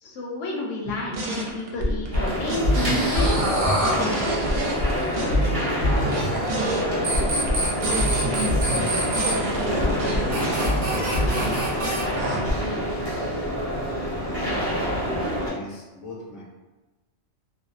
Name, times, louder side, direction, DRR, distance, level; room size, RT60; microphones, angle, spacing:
voice 1, 0.0-3.5, left 1 dB, 80° left, -2 dB, 0.9 m, -30 dB
sound 1, 0.8-6.8 7.1-12.5, equal, 65° right, 0.4 m, -26 dB
sound 2, 2.1-15.5, equal, 20° right, 0.7 m, -27 dB
sound 3, 2.7-5.1 6.3-6.8 7.0-9.3 10.3-12.0, right 1 dB, 85° right, 1.0 m, -28 dB
voice 2, 5.1-9.5 10.0-12.9 14.0-16.4, left 1 dB, 40° left, -3 dB, 0.5 m, -39 dB
2.6 x 2.0 x 2.4 m, 1.2 s
omnidirectional pair, 1.2 m